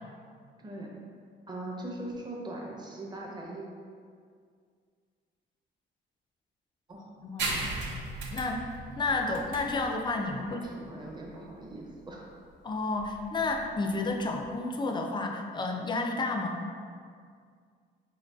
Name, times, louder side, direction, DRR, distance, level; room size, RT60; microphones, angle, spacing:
voice 1, 0.6-0.9 1.5-3.7 6.9-7.0 10.4-12.3, right 1 dB, 20° right, -2 dB, 0.6 m, -41 dB
sound 1, 7.4-14.5, right 3 dB, 70° right, 0.6 m, -38 dB
voice 2, 8.3-8.6 9.0-10.6 12.6-16.6, left 3 dB, 25° left, 3 dB, 0.3 m, -31 dB
3.9 x 2.8 x 2.3 m, 2.1 s
cardioid pair, 90°, 20 cm